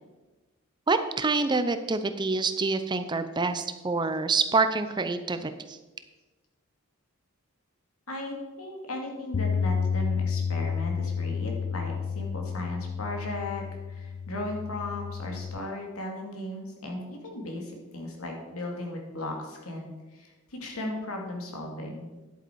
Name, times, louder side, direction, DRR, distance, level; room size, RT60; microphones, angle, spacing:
voice 1, 0.9-5.8, right 3 dB, 20° right, 10 dB, 0.5 m, -26 dB
voice 2, 8.1-13.6 13.9-22.1, left 1 dB, 80° left, 1 dB, 2.4 m, -36 dB
Bass guitar, 9.3-15.6, left 6 dB, 55° left, 0.4 m, -31 dB
10.5 x 8.3 x 4.6 m, 1.1 s
head